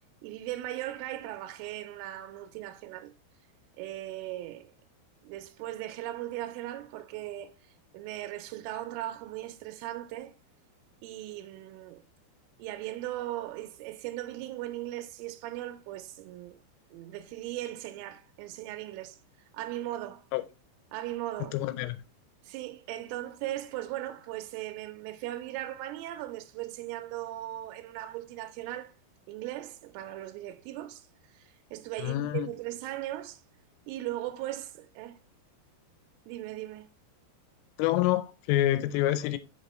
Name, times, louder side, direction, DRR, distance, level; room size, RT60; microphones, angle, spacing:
voice 1, 0.2-3.1 3.8-4.7 5.2-10.3 11.0-12.0 12.6-16.6 16.9-19.2 19.5-20.3 20.9-21.6 22.4-28.9 29.3-33.4 33.9-35.2 36.3-36.9, right 14 dB, 80° right, 3.0 m, -38 dB
voice 2, 21.5-22.0 32.0-32.5 37.8-39.4, left 14 dB, 85° left, 3.1 m, -27 dB
6.6 x 5.5 x 3.0 m
omnidirectional pair, 5.9 m